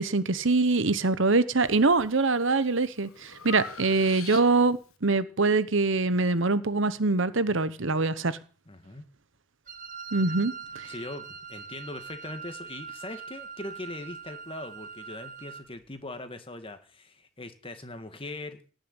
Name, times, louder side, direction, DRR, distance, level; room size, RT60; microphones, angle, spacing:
voice 1, 0.0-8.4 10.1-10.9, right 3 dB, 65° right, 1.0 m, -24 dB
Breathing, 1.6-2.1 2.6-4.8, left 7 dB, 85° left, 1.6 m, -43 dB
voice 2, 8.7-9.0 10.9-18.6, left 2 dB, 25° left, 1.9 m, -40 dB
Wind instrument woodwind instrument, 9.7-15.7, right 6 dB, 40° right, 1.8 m, -42 dB
18.0 x 6.8 x 9.8 m
head